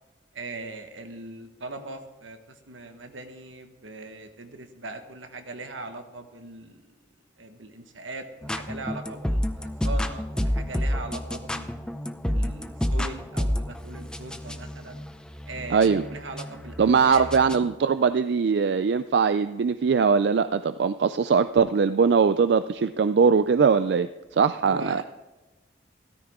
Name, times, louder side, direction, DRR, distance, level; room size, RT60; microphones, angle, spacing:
voice 1, 0.3-6.8 7.4-11.7 12.2-15.0 15.5-17.3 24.6-25.0, right 2 dB, 80° right, 6 dB, 1.3 m, -40 dB
sound 1, 8.4-17.7, equal, 5° left, 0.5 m, -30 dB
voice 2, 15.7-16.0 16.8-25.0, right 5 dB, 60° right, 12 dB, 0.3 m, -21 dB
13.5 x 13.0 x 3.6 m, 1.1 s
head